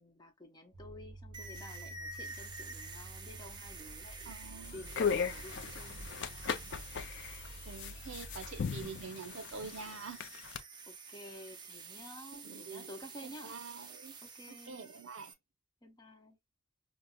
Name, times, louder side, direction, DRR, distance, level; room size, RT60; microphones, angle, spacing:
voice 1, 0.0-6.8 10.9-13.6 14.2-14.9 15.8-16.4, left 1 dB, 20° left, 0.8 m, -52 dB
sound 1, 0.7-8.8, right 1 dB, 40° right, 1.8 m, -51 dB
sound 2, 1.3-15.3, right 4 dB, 20° right, 0.5 m, -49 dB
voice 2, 4.2-4.8 7.6-10.2 12.4-12.9 13.2-14.2 14.5-15.3, right 5 dB, 65° right, 0.6 m, -46 dB
sound 3, 4.7-10.6, left 6 dB, 55° left, 0.4 m, -38 dB
5.4 x 2.0 x 2.2 m
head